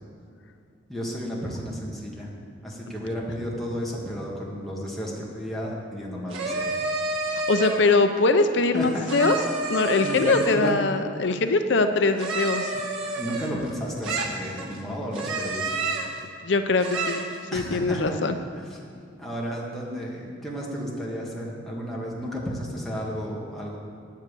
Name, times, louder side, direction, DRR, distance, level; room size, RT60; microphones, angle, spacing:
voice 1, 0.9-2.3 2.6-6.7 8.7-9.1 10.0-10.8 13.1-15.9 17.5-18.2 18.6-18.8 19.2-23.8, equal, ahead, -5 dB, 2.0 m, -32 dB
sound 1, 6.3-7.9 9.1-10.7 12.2-13.7 14.0-14.8 15.1-16.2 16.8-17.4, right 3 dB, 85° right, 1.8 m, -29 dB
voice 2, 7.5-9.3 9.7-12.7 16.4-17.3 17.5-18.4, left 3 dB, 60° left, 8 dB, 0.6 m, -22 dB
9.5 x 9.0 x 8.3 m, 2.5 s
head